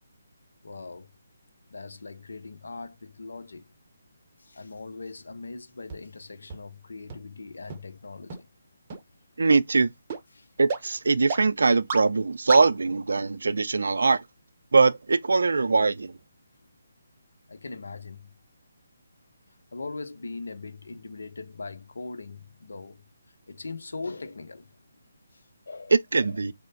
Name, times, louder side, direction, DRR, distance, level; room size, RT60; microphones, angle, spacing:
voice 1, 0.6-1.1 1.7-3.7 4.4-8.5 10.3-10.5 17.5-18.3 19.7-23.0 23.5-24.7 25.3-25.9, left 3 dB, 75° left, 0.6 m, -40 dB
sound 1, 5.9-6.0 6.5-6.6 7.1-7.2 7.7-7.8 8.3-8.4 8.9-9.0 9.5-9.6 10.1-10.2 10.7-10.8 11.3-11.4 11.9-12.0 12.5-12.6, right 5 dB, 35° right, 0.6 m, -31 dB
voice 2, 9.4-9.9 10.6-14.2 14.7-16.2 25.9-26.5, right 4 dB, 70° right, 0.3 m, -22 dB
3.1 x 2.0 x 3.9 m
figure-of-eight pair, 150°, 0 cm